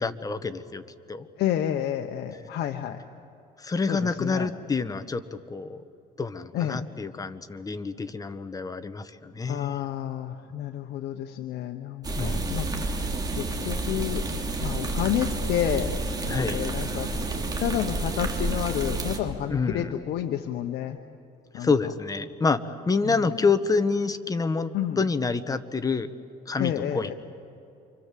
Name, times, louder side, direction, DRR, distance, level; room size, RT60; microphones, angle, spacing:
voice 1, 0.0-1.3 3.6-5.8 6.2-9.8 12.2-12.6 16.3-16.6 19.5-19.9 21.5-24.7 25.0-26.1 26.5-27.1, left 4 dB, 20° left, 10 dB, 1.2 m, -27 dB
voice 2, 1.4-3.0 3.9-4.5 6.5-6.8 9.5-14.2 14.6-15.9 16.3-17.1 17.6-21.0 21.5-21.7 23.0-23.2 24.7-25.0 26.6-27.1, left 11 dB, 75° left, 5 dB, 1.1 m, -30 dB
sound 1, 12.0-19.2, right 2 dB, 20° right, 3.1 m, -29 dB
28.5 x 24.5 x 7.6 m, 2.8 s
cardioid pair, 110°, 17 cm